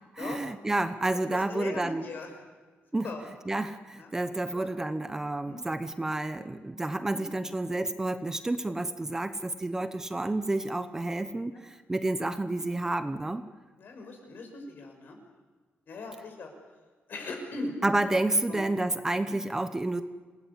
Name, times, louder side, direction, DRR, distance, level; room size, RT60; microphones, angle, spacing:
voice 1, 0.1-2.0 2.9-3.1 3.5-13.4 17.8-20.0, right 2 dB, 10° right, 10 dB, 0.9 m, -30 dB
voice 2, 1.3-2.3 3.0-3.2 4.0-4.2 4.5-4.7 5.4-5.6 7.1-7.3 9.0-9.2 11.5-11.6 12.5-12.6 13.8-15.2 15.9-16.5 17.1-17.8 18.5-18.7 19.2-19.4, left 3 dB, 55° left, 3 dB, 5.9 m, -40 dB
27.5 x 19.0 x 8.4 m, 1.4 s
wide cardioid pair, 175°, 4 cm